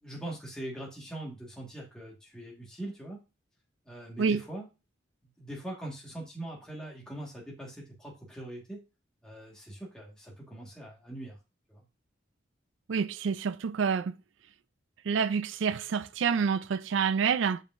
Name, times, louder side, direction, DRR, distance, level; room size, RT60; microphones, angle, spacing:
voice 1, 0.0-3.2 3.8-4.7 5.4-8.8 9.2-11.4 11.7-11.8, right 1 dB, 5° left, 1.6 m, -42 dB
voice 2, 12.9-14.1 15.1-17.6, right 6 dB, 80° right, 0.4 m, -28 dB
7.5 x 4.9 x 2.5 m
head